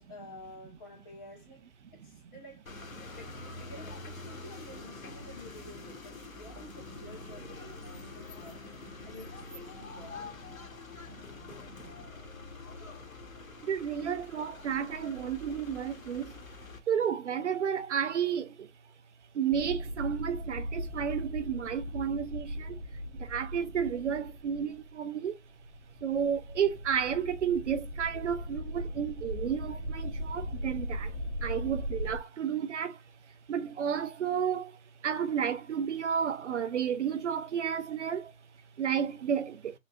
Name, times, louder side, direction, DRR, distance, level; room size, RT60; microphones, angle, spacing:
voice 1, 0.0-2.7 3.1-10.2, left 1 dB, 20° left, 1.3 m, -50 dB
sound 1, 2.7-16.8, left 3 dB, 85° left, 1.2 m, -46 dB
voice 2, 13.7-16.3 16.9-18.5 19.4-22.7 23.3-25.3 26.0-31.1 31.4-32.9 33.5-34.7 35.0-38.3 38.8-39.6, right 8 dB, 60° right, 0.6 m, -31 dB
sound 2, 19.5-24.9 25.4-32.2, equal, 35° right, 1.2 m, -38 dB
3.9 x 3.2 x 2.3 m
hypercardioid pair, 150°, 40 cm